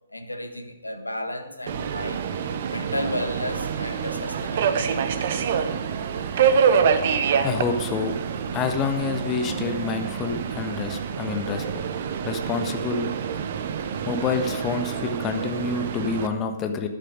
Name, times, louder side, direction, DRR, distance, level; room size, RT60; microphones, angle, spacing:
voice 1, 0.1-2.2 2.7-5.1, left 1 dB, 85° left, 1.4 m, -33 dB
Subway metro underground, 1.7-16.3, right 7 dB, 45° right, 0.9 m, -26 dB
voice 2, 7.4-8.2 8.5-11.6 12.2-13.1 14.1-16.9, left 5 dB, 20° left, 1.3 m, -27 dB
13.0 x 10.5 x 5.0 m
figure-of-eight pair, 120°, 0 cm